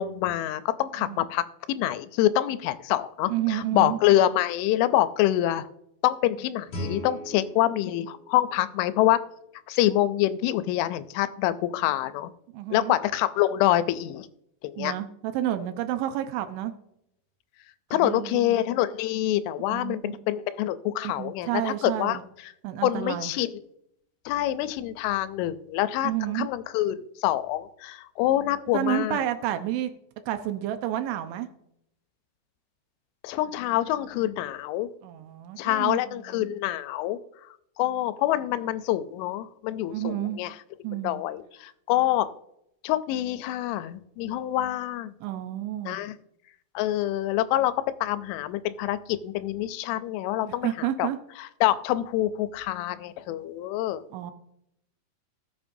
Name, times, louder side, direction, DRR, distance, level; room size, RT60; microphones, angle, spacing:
voice 1, 0.0-5.7 6.0-9.2 9.7-12.3 12.7-14.3 14.6-14.9 17.9-22.2 22.8-23.5 24.3-29.2 33.2-34.9 35.6-37.2 37.8-40.5 41.0-42.3 42.8-45.1 45.9-46.1 46.8-47.7 48.0-51.1 51.4-54.0, left 13 dB, 85° left, 13 dB, 3.1 m, -26 dB
voice 2, 3.3-4.0 12.5-12.9 14.8-16.7 17.9-18.6 19.7-20.2 21.0-22.2 22.6-23.3 26.0-26.5 28.7-29.9 30.3-31.5 35.0-36.5 39.9-40.4 40.8-41.2 45.2-46.0 50.4-51.2 54.1-54.3, right 12 dB, 80° right, 8 dB, 3.2 m, -30 dB
Guitar, 6.7-9.5, equal, 45° left, 3.1 m, -39 dB
17.5 x 7.3 x 2.7 m, 0.78 s
omnidirectional pair, 5.4 m